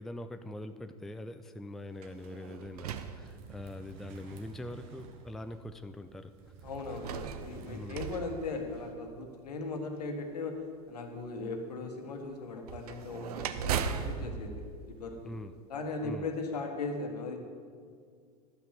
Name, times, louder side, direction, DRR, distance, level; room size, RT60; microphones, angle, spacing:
voice 1, 0.0-6.3 7.7-8.0 15.3-15.5 16.0-16.3, left 1 dB, ahead, 9 dB, 0.4 m, -43 dB
sound 1, 2.0-4.0 4.7-4.8 6.7-9.2 12.6-15.7, right 7 dB, 70° right, 0.7 m, -38 dB
sound 2, 3.2-8.9, right 5 dB, 55° right, 1.4 m, -52 dB
voice 2, 6.6-10.6 10.9-15.3 15.7-17.4, left 3 dB, 75° left, 4 dB, 1.5 m, -38 dB
12.0 x 5.8 x 7.3 m, 2.1 s
figure-of-eight pair, 85°, 20 cm